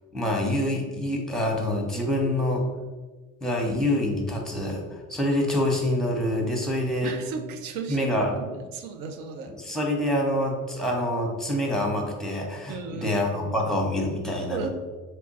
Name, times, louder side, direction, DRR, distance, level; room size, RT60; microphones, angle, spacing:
voice 1, 0.1-2.6 3.4-7.1 7.9-8.3 9.6-14.7, left 1 dB, ahead, 1 dB, 0.8 m, -26 dB
voice 2, 7.0-9.5 12.7-13.7 14.5-14.7, right 5 dB, 65° right, 6 dB, 0.6 m, -35 dB
3.2 x 2.2 x 4.0 m, 1.3 s
supercardioid pair, 70°, 38 cm